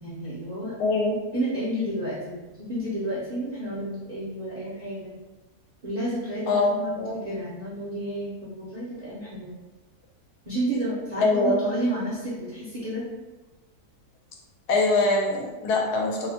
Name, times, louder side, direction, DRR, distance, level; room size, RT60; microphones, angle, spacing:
voice 1, 0.0-0.7 1.3-5.1 5.8-9.5 10.4-13.0, right 1 dB, 50° right, -10 dB, 0.4 m, -31 dB
voice 2, 0.8-1.2 6.5-6.7 7.0-7.2 11.2-11.6 14.7-16.3, left 2 dB, 90° left, -1 dB, 1.1 m, -23 dB
2.8 x 2.1 x 2.7 m, 1.1 s
omnidirectional pair, 1.6 m